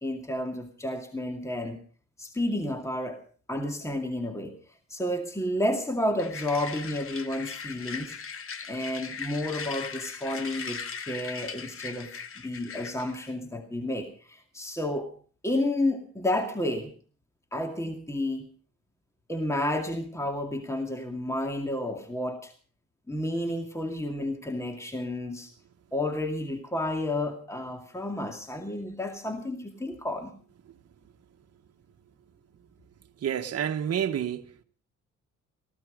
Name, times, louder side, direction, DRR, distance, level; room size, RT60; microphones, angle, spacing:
voice 1, 0.0-1.8 2.2-3.2 3.5-4.6 4.9-8.1 8.7-10.8 11.1-15.1 15.4-16.9 17.5-18.5 19.3-22.5 23.1-25.5 25.9-30.4, left 1 dB, 10° left, 2.3 m, -31 dB
sound 1, 6.2-13.3, left 6 dB, 45° left, 1.6 m, -39 dB
voice 2, 33.2-34.6, right 9 dB, 55° right, 1.4 m, -29 dB
17.5 x 15.0 x 5.2 m
cardioid pair, 90°, 30 cm